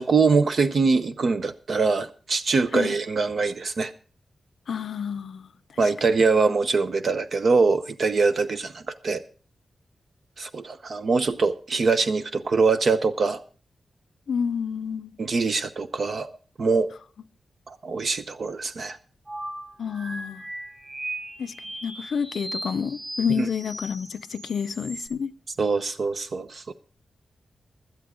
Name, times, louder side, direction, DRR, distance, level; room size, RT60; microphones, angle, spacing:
voice 1, 0.0-3.9 5.8-9.2 10.4-13.4 15.2-16.9 17.7-19.0 23.4-23.5 25.6-26.7, right 4 dB, 50° right, 0.8 m, -23 dB
voice 2, 4.7-5.5 14.3-15.1 19.8-20.4 21.4-21.5 21.8-25.3, left 6 dB, 65° left, 0.5 m, -29 dB
sound 1, 19.3-25.1, right 1 dB, 20° right, 4.0 m, -37 dB
16.5 x 12.0 x 3.7 m
wide cardioid pair, 180°, 0 cm